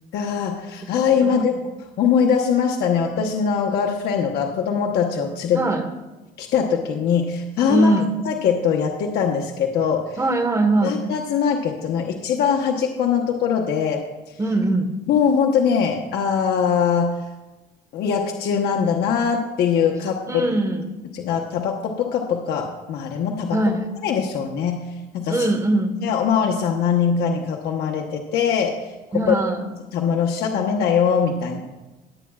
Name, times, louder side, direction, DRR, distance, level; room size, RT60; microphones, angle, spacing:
voice 1, 0.1-1.5 2.0-5.6 6.4-7.9 8.2-10.2 10.8-14.0 15.1-17.1 17.9-20.4 21.1-23.6 24.0-24.9 25.1-25.5 26.0-28.8 29.1-29.3 29.9-31.6, left 7 dB, 75° left, 1 dB, 1.0 m, -22 dB
voice 2, 5.5-5.9 7.7-8.1 10.2-11.0 14.4-14.9 20.3-20.9 23.5-23.8 25.3-26.0 29.1-29.7, right 2 dB, 20° right, 6 dB, 1.3 m, -21 dB
19.0 x 8.4 x 2.4 m, 1.1 s
cardioid pair, 110°, 17 cm